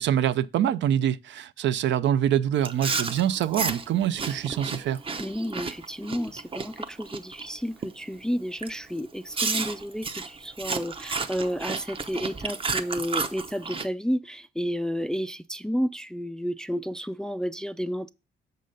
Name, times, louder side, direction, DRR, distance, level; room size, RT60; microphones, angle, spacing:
voice 1, 0.0-5.0, right 10 dB, 65° right, 0.5 m, -25 dB
Chewing mastication, 2.6-7.5 7.8-8.1 8.6-8.8 9.3-13.9, right 4 dB, 25° right, 0.7 m, -32 dB
voice 2, 5.2-18.1, equal, 5° left, 0.3 m, -31 dB
6.5 x 3.9 x 6.4 m
cardioid pair, 90°, 20 cm